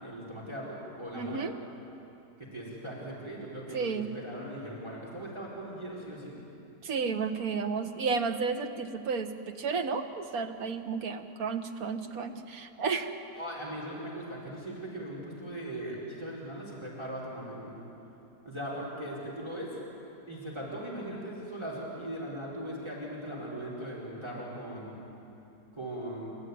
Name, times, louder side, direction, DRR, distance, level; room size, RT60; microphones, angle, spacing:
voice 1, 0.0-1.5 2.4-6.4 13.3-17.8 18.4-19.7 20.3-25.0 25.7-26.3, right 1 dB, 15° right, -5 dB, 4.2 m, -39 dB
voice 2, 1.1-1.5 3.7-4.1 6.8-13.2, right 5 dB, 65° right, 6 dB, 1.6 m, -32 dB
30.0 x 14.0 x 9.5 m, 2.9 s
omnidirectional pair, 1.8 m